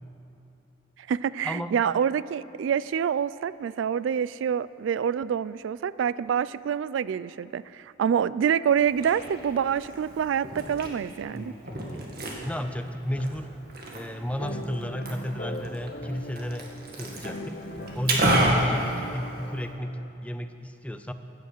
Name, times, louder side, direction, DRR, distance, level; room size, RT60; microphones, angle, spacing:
voice 1, 1.1-11.5, right 8 dB, 75° right, 17 dB, 0.3 m, -26 dB
Liquid, 8.7-19.7, right 1 dB, 55° right, 1.9 m, -32 dB
voice 2, 11.3-12.0 12.4-13.5 13.9-17.6 17.9-21.1, equal, 5° left, 9 dB, 0.5 m, -32 dB
sound 1, 14.4-20.1, left 1 dB, 50° left, 0.9 m, -39 dB
15.5 x 8.8 x 6.7 m, 2.8 s
head